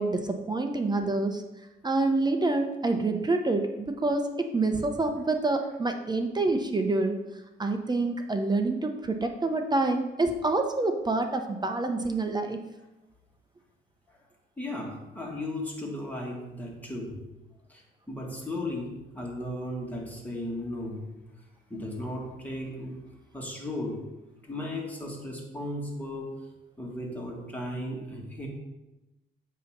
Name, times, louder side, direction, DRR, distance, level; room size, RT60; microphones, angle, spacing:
voice 1, 0.0-1.4 1.8-7.2 7.6-12.6, right 2 dB, 20° right, 5 dB, 0.7 m, -27 dB
voice 2, 14.6-17.2 17.7-21.0 21.7-23.0 23.3-24.0 24.4-26.3 26.8-28.5, left 1 dB, 10° left, -2 dB, 1.8 m, -35 dB
8.3 x 3.0 x 5.8 m, 1.0 s
cardioid pair, 90°, 20 cm